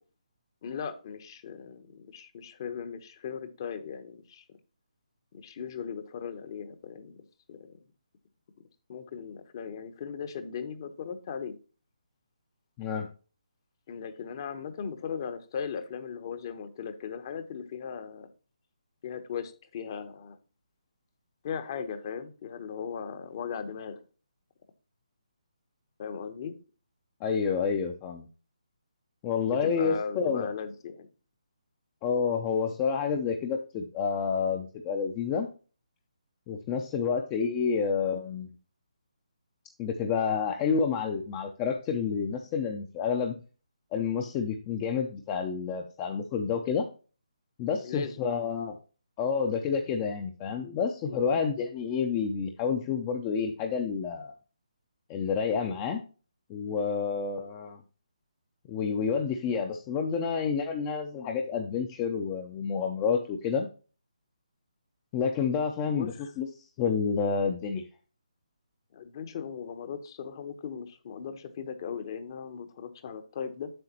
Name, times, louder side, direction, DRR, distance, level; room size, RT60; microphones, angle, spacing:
voice 1, 0.6-4.4 5.3-7.2 7.5-7.8 8.9-11.5 13.9-18.3 19.0-20.4 21.4-24.0 26.0-26.5 29.5-31.1 47.8-48.5 51.0-51.2 65.9-66.3 68.9-73.7, left 7 dB, 35° left, 11 dB, 0.9 m, -38 dB
voice 2, 27.2-28.3 29.2-30.5 32.0-35.5 36.5-38.5 39.8-43.3 43.9-46.8 47.6-48.7 49.2-54.3 55.1-56.0 56.5-57.8 58.7-63.7 65.1-66.5 66.8-67.8, left 6 dB, 20° left, 4 dB, 0.5 m, -29 dB
7.8 x 6.4 x 2.9 m, 0.36 s
figure-of-eight pair, 160°, 4 cm